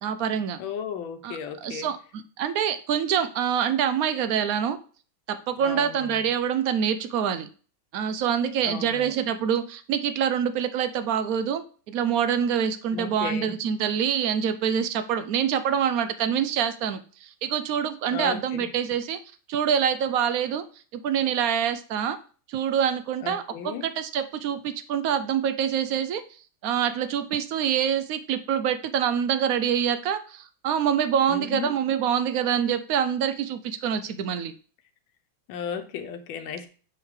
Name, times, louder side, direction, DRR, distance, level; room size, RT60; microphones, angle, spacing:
voice 1, 0.0-0.6 1.2-2.0 2.4-4.8 5.3-7.5 7.9-19.2 19.5-20.6 20.9-22.2 22.5-26.2 26.6-34.5, right 8 dB, 70° right, 10 dB, 0.8 m, -26 dB
voice 2, 0.6-1.9 5.6-6.2 8.6-9.1 12.9-13.6 18.1-18.7 23.2-23.9 31.3-31.7 35.5-36.7, left 7 dB, 85° left, 6 dB, 1.5 m, -35 dB
6.3 x 4.8 x 3.5 m, 0.39 s
omnidirectional pair, 2.1 m